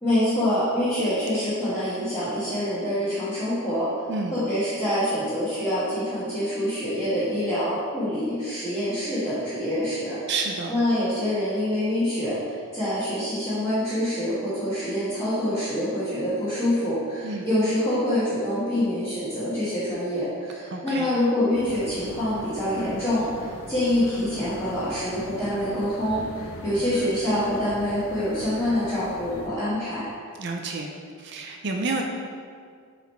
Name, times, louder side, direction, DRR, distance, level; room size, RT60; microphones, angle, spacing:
voice 1, 0.0-3.9 4.3-10.2 10.7-30.1, left 1 dB, 10° left, -15 dB, 1.4 m, -26 dB
voice 2, 10.3-10.7 17.2-17.5 20.7-21.1 30.4-30.9 31.2-32.0, right 3 dB, 50° right, 2 dB, 0.5 m, -29 dB
sound 1, 21.5-29.5, left 2 dB, 75° left, 0.6 m, -41 dB
5.0 x 4.9 x 4.5 m, 2.1 s
head